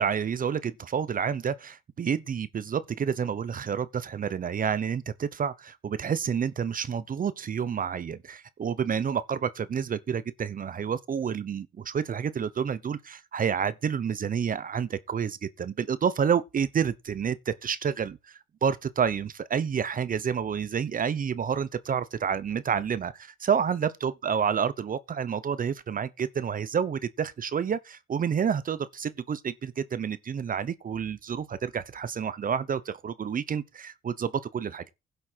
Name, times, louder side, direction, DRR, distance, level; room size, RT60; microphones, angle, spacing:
voice 1, 0.0-34.9, right 7 dB, 45° right, 0.9 m, -29 dB
11.5 x 7.9 x 4.6 m
cardioid pair, 90°, 20 cm